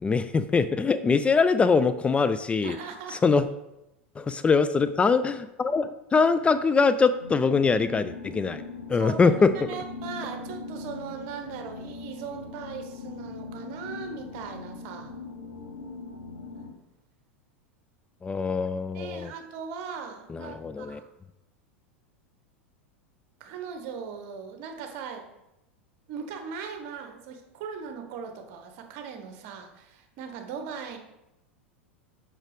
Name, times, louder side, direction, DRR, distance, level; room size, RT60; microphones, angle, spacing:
voice 1, 0.0-2.8 3.1-3.4 4.2-8.6 8.9-9.5 18.2-19.3 20.3-21.0, left 4 dB, 15° left, 12 dB, 0.4 m, -23 dB
voice 2, 2.6-3.2 9.0-15.2 18.9-21.1 23.4-25.3 26.1-31.0, right 6 dB, 55° right, 6 dB, 1.2 m, -39 dB
sound 1, 7.2-16.7, left 3 dB, 75° left, 1.6 m, -40 dB
6.4 x 6.0 x 5.0 m, 0.91 s
hypercardioid pair, 90°, 7 cm